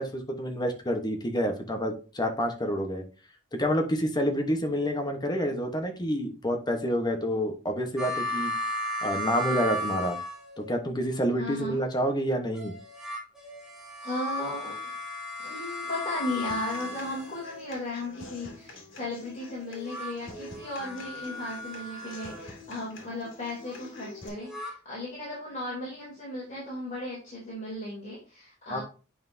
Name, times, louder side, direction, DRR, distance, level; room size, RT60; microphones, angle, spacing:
voice 1, 0.0-3.0 3.5-8.5 9.0-10.2 10.6-12.7 28.7-28.8, equal, 20° left, 4 dB, 1.1 m, -28 dB
sound 1, 8.0-10.8 12.6-17.8 19.6-22.5 24.2-24.7, left 1 dB, 5° right, 2.1 m, -35 dB
voice 2, 11.4-11.8 14.0-14.9 15.4-28.8, left 1 dB, 40° left, -6 dB, 3.2 m, -36 dB
Human voice / Acoustic guitar, 16.3-24.3, left 2 dB, 70° left, 2.3 m, -47 dB
8.6 x 5.6 x 2.7 m, 0.36 s
head